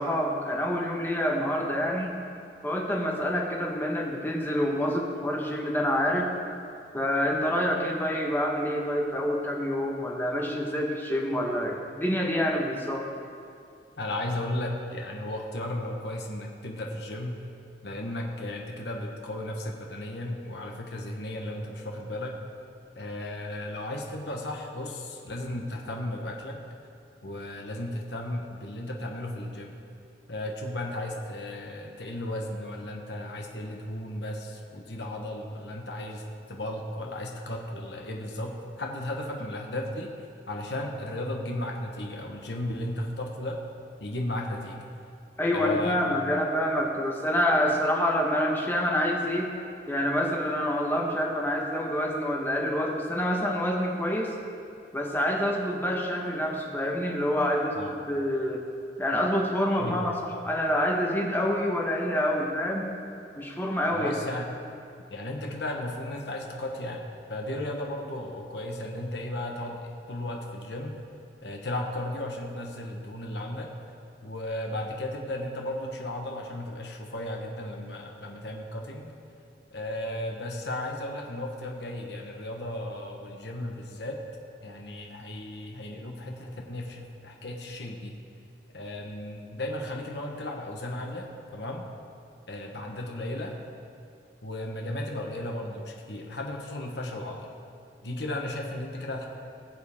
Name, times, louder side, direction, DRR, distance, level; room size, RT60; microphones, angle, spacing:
voice 1, 0.0-2.2 2.6-6.3 6.9-13.1 45.4-49.5 49.9-54.3 54.9-58.6 59.0-62.9 63.4-64.2, equal, 10° left, 0 dB, 1.3 m, -27 dB
voice 2, 14.0-17.4 17.8-22.3 22.9-26.6 27.2-29.8 30.3-36.2 36.5-40.1 40.5-43.6 44.0-44.9 45.5-46.1 57.8-57.9 59.8-60.2 63.9-64.5 65.1-69.8 70.1-71.0 71.4-73.7 74.2-79.1 79.7-84.2 84.6-88.1 88.7-91.9 92.5-93.5 94.4-97.5 98.0-99.3, left 1 dB, 75° left, 1 dB, 1.3 m, -35 dB
20.0 x 7.5 x 3.6 m, 2.4 s
head